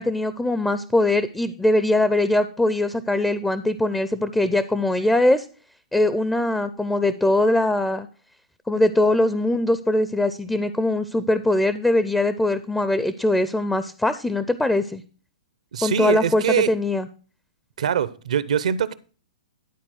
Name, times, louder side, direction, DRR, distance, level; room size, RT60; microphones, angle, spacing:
voice 1, 0.0-5.5 5.9-8.1 8.7-15.0 15.8-17.1, left 1 dB, 5° left, 0.4 m, -21 dB
voice 2, 15.7-16.7 17.8-18.9, right 8 dB, 70° right, 0.7 m, -23 dB
11.0 x 4.2 x 6.2 m
hypercardioid pair, 135°, 4 cm